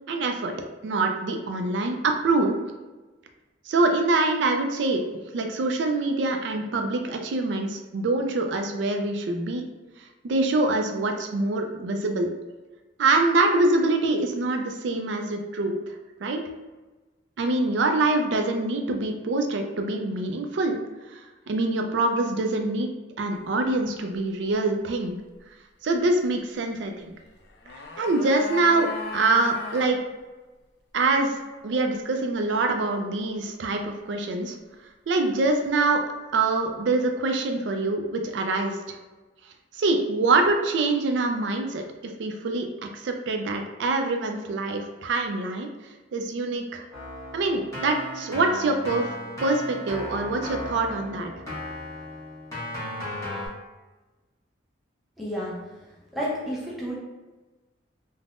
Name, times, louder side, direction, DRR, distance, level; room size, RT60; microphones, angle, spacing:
voice 1, 0.1-0.5 0.8-2.6 3.7-5.0 5.3-9.6 10.2-12.3 13.0-15.8 16.2-16.4 17.4-20.8 21.1-21.2 21.5-22.9 23.2-25.2 25.8-27.1 28.0-30.0 30.9-31.3 31.6-34.6 35.1-36.0 36.3-38.8 39.8-45.7 46.1-46.8 47.3-49.1 49.4-51.3, right 2 dB, 70° right, 4 dB, 0.4 m, -25 dB
sound 1, 27.3-29.9 30.2-30.3, left 4 dB, 55° left, 0.3 m, -37 dB
Keyboard (musical), 46.9-53.5, left 1 dB, 15° left, 0.9 m, -36 dB
voice 2, 55.2-55.6 56.1-56.9, equal, ahead, -6 dB, 0.6 m, -30 dB
3.3 x 2.1 x 2.4 m, 1.2 s
head